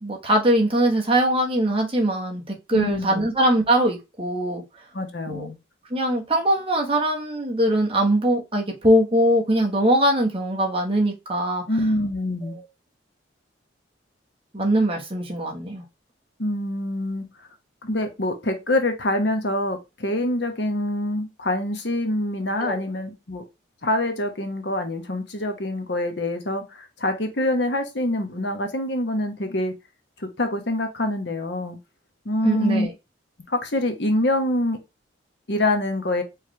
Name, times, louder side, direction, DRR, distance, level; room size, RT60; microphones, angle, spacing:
voice 1, 0.0-4.6 5.3-5.5 5.9-11.6 12.5-12.6 14.5-15.8 22.6-22.8 32.4-32.9, right 1 dB, 30° right, 1.3 m, -21 dB
voice 2, 2.7-3.3 4.9-5.6 11.7-12.6 16.4-17.3 17.8-23.4 23.8-29.7 30.2-31.8 32.2-32.9 33.5-34.8 35.5-36.2, left 1 dB, 60° left, 1.1 m, -25 dB
4.8 x 3.3 x 3.2 m
head